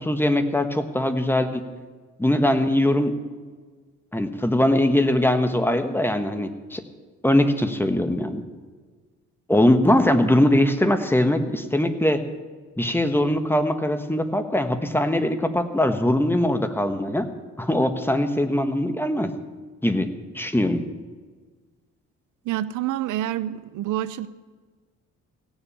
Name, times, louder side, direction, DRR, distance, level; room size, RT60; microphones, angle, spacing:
voice 1, 0.0-1.6 2.2-3.1 4.1-6.8 7.2-8.4 9.5-12.2 12.8-17.3 17.6-19.3 19.8-20.1 20.3-20.8, left 1 dB, 5° left, 8 dB, 1.3 m, -21 dB
voice 2, 22.5-24.3, right 13 dB, 80° right, 15 dB, 0.6 m, -27 dB
17.0 x 7.2 x 8.8 m, 1.4 s
cardioid pair, 90°, 30 cm